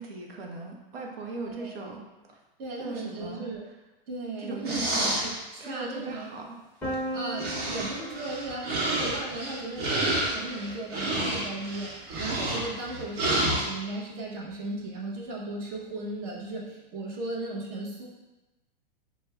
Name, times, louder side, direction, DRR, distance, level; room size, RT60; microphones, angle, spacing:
voice 1, 0.0-2.4 2.8-3.5 4.4-5.3 5.6-6.6, right 3 dB, 90° right, 1 dB, 0.8 m, -38 dB
voice 2, 1.4-1.8 2.6-3.6 4.1-5.1 5.5-6.3 7.1-18.0, right 2 dB, 30° right, -3 dB, 0.8 m, -36 dB
sound 1, 4.7-5.3 6.9-7.0 7.4-13.6, right 1 dB, 60° right, 0.9 m, -29 dB
Piano, 6.8-12.6, right 1 dB, 5° left, 0.8 m, -40 dB
5.1 x 2.1 x 2.2 m, 1.1 s
supercardioid pair, 150°, 29 cm